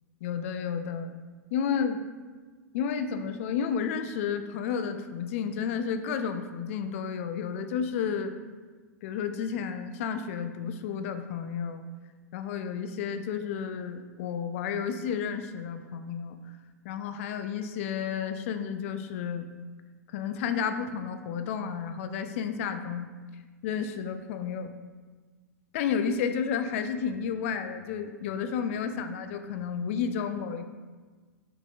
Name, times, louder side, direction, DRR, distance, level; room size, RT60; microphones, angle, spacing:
voice 1, 0.2-1.1 1.5-2.0 2.7-8.3 9.0-11.8 12.3-16.4 16.8-19.5 20.1-23.1 23.6-24.7 25.7-30.6, left 7 dB, 50° left, 8 dB, 0.3 m, -31 dB
4.8 x 3.5 x 2.5 m, 1.4 s
figure-of-eight pair, 95°, 9 cm